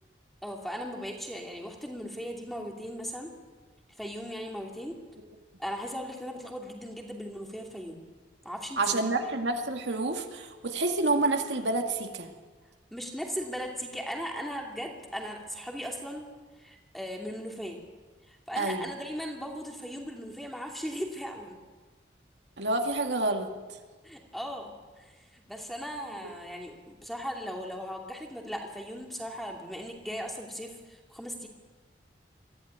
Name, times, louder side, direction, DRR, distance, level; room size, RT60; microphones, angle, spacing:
voice 1, 0.4-3.3 4.0-5.0 5.6-8.0 8.4-9.2 12.9-16.3 16.6-17.8 18.3-21.6 24.0-31.5, equal, ahead, 1 dB, 2.6 m, -38 dB
voice 2, 8.8-12.3 18.6-18.8 22.6-23.5, right 2 dB, 75° right, 4 dB, 2.2 m, -28 dB
23.5 x 15.0 x 9.6 m, 1.4 s
head